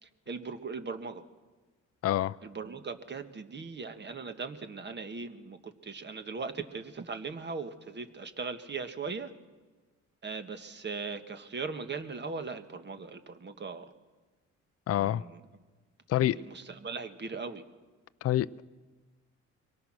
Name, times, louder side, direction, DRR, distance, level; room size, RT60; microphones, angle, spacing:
voice 1, 0.0-1.2 2.4-9.3 10.2-13.9 14.9-15.4 16.2-17.6, right 4 dB, 35° right, 8 dB, 1.5 m, -39 dB
voice 2, 2.0-2.4 14.9-15.2 16.1-16.4 18.2-18.6, left 13 dB, 55° left, 15 dB, 0.5 m, -27 dB
23.5 x 18.0 x 6.2 m, 1.3 s
cardioid pair, 90°, 30 cm